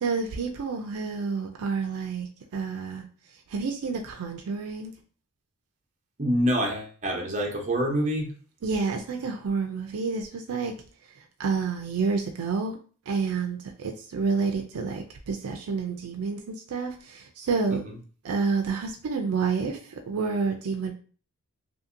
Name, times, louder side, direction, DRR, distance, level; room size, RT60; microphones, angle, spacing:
voice 1, 0.0-3.0 3.5-4.9 8.6-10.7 11.4-12.8 13.1-16.4 16.7-17.8 18.2-19.8 20.1-20.9, right 5 dB, 75° right, 3 dB, 0.4 m, -29 dB
voice 2, 6.2-8.3 17.7-18.0, equal, 35° right, -1 dB, 0.7 m, -26 dB
2.8 x 2.7 x 2.5 m, 0.40 s
head